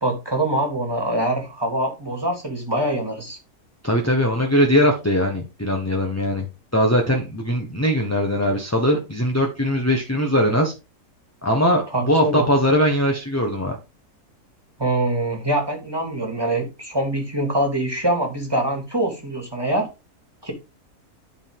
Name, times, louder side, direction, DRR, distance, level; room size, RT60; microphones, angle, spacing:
voice 1, 0.0-3.4 11.9-12.5 14.8-19.9 20.4-20.5, right 1 dB, 15° right, 2.2 m, -24 dB
voice 2, 3.8-6.5 6.7-10.7 11.4-13.8, equal, 10° left, 1.2 m, -20 dB
11.0 x 5.0 x 3.7 m
omnidirectional pair, 1.6 m